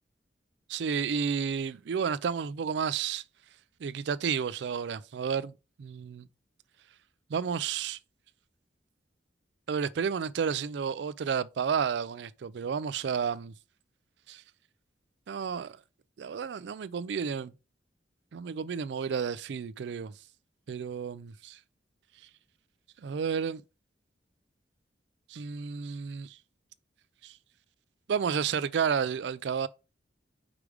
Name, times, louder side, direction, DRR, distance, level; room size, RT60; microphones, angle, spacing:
voice 1, 0.7-3.2 3.8-5.5 5.8-6.3 7.3-8.0 9.7-13.5 14.3-14.4 15.3-15.8 16.2-17.5 18.3-20.1 20.7-21.6 23.0-23.6 25.3-26.4 27.2-27.3 28.1-29.7, right 6 dB, 70° right, 0.4 m, -31 dB
4.9 x 4.9 x 4.8 m
head